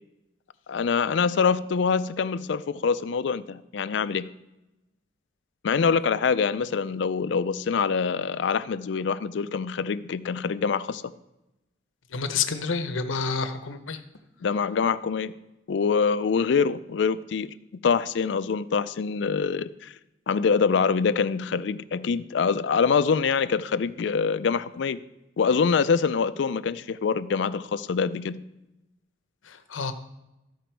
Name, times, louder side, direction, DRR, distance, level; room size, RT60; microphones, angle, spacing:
voice 1, 0.7-4.3 5.6-11.0 14.4-15.3 15.7-17.5 17.8-19.9 20.3-25.0 25.4-28.4, left 5 dB, 65° left, 14 dB, 0.4 m, -25 dB
voice 2, 12.1-14.0 29.5-29.9, left 5 dB, 85° left, 9 dB, 0.8 m, -29 dB
13.5 x 5.1 x 4.5 m, 0.94 s
head